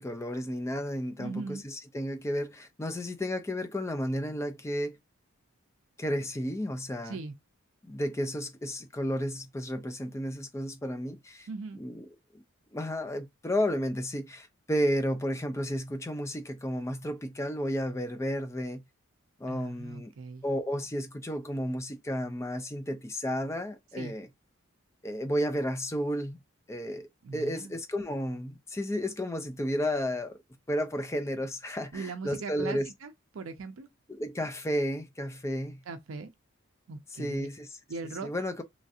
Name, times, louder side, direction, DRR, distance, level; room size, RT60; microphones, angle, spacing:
voice 1, 0.0-5.0 6.0-7.2 7.8-11.5 11.7-12.1 12.7-18.8 19.4-20.1 20.4-24.3 25.0-26.4 26.7-30.4 30.7-32.9 34.1-35.8 37.1-37.8 38.2-38.6, equal, 15° left, 0.4 m, -32 dB
voice 2, 1.2-1.6 7.0-7.3 11.5-11.8 19.5-20.4 24.0-24.1 27.2-27.7 31.9-33.9 35.9-36.3 36.9-37.5 37.9-38.3, right 4 dB, 70° right, 0.5 m, -39 dB
3.1 x 2.4 x 2.6 m
head